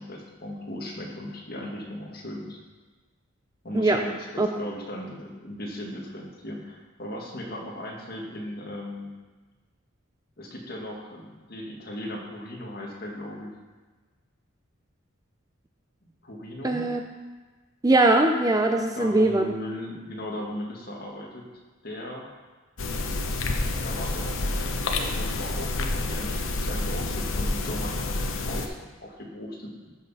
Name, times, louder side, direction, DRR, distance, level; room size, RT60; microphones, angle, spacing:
voice 1, 0.0-2.6 3.6-9.1 10.4-13.6 16.0-16.9 18.9-21.4 21.8-22.3 23.8-29.9, left 1 dB, 45° left, -2 dB, 1.7 m, -37 dB
voice 2, 16.6-17.0 17.8-19.5, right 2 dB, 15° right, 4 dB, 0.4 m, -21 dB
sound 1, 22.8-28.7, left 2 dB, 70° left, 0.9 m, -28 dB
14.0 x 5.9 x 4.2 m, 1.3 s
head